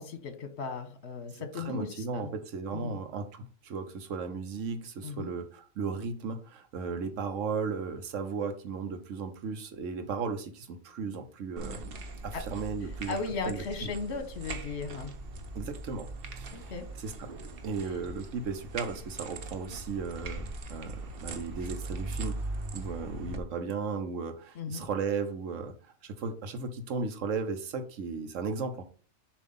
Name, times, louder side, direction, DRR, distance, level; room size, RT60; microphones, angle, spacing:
voice 1, 0.0-2.3 2.7-3.0 5.0-5.3 12.3-12.4 13.1-15.1 16.5-16.9 24.6-24.9, left 4 dB, 60° left, 7 dB, 1.3 m, -36 dB
voice 2, 1.3-13.9 15.5-16.1 16.3-17.3 17.6-22.4 22.7-28.8, right 5 dB, 90° right, 8 dB, 1.2 m, -36 dB
sound 1, 11.6-23.4, right 2 dB, 55° right, 1.0 m, -40 dB
7.1 x 2.9 x 5.4 m, 0.40 s
omnidirectional pair, 1.3 m